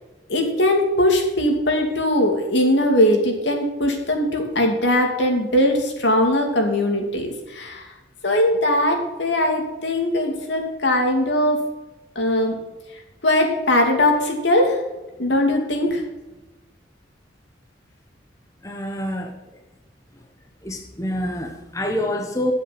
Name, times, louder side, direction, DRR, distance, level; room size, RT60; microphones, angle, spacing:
voice 1, 0.3-7.9 8.2-11.6 12.2-12.6 13.2-14.8 15.2-16.0, left 1 dB, 65° left, 2 dB, 2.7 m, -20 dB
voice 2, 18.6-19.3 20.6-22.5, left 1 dB, 15° left, 3 dB, 1.0 m, -27 dB
12.0 x 7.7 x 6.0 m, 1.1 s
head